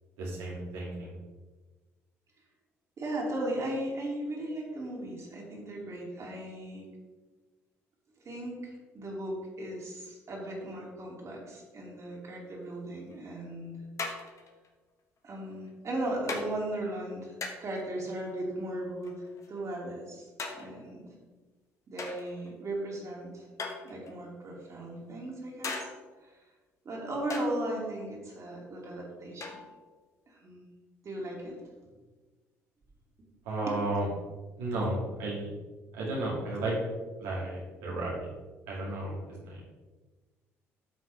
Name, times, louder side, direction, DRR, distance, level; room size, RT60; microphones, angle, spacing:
voice 1, 0.2-1.2 33.4-34.1 34.6-35.5 35.9-36.8 37.2-38.3 38.7-39.2 39.4-39.6, right 2 dB, 75° right, -5 dB, 2.3 m, -33 dB
voice 2, 3.0-6.9 8.2-13.8 15.2-20.2 20.5-21.1 21.9-23.5 23.8-25.9 26.2-26.4 26.8-29.6 30.3-30.6 31.0-31.6, right 1 dB, 45° right, -3 dB, 2.9 m, -37 dB
sound 1, 13.1-13.2 14.0-14.7 15.5-15.7 16.3-16.5 17.4-17.8 19.0-19.6 20.4-20.9 22.0-22.5 23.6-24.3 25.6-26.2 27.3-27.6 29.4-29.9, left 4 dB, 45° left, 1.4 m, -39 dB
11.0 x 6.0 x 3.4 m, 1.3 s
hypercardioid pair, 50°, 7 cm